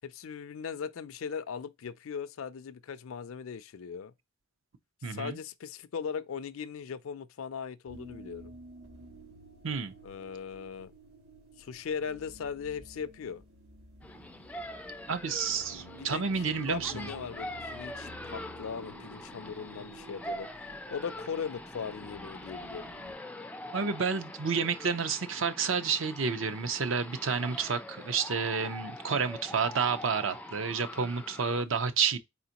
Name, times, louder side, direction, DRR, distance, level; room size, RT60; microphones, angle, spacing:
voice 1, 0.0-4.1 5.1-8.5 10.0-10.9 11.6-13.4 16.0-20.5 20.9-22.9, left 6 dB, 75° left, 0.4 m, -39 dB
voice 2, 5.0-5.4 9.6-9.9 15.1-17.1 23.7-32.2, right 5 dB, 60° right, 0.6 m, -30 dB
sound 1, 7.9-23.1, equal, 90° right, 1.5 m, -52 dB
sound 2, 14.0-31.6, left 1 dB, 5° left, 0.3 m, -44 dB
4.3 x 3.9 x 2.9 m
head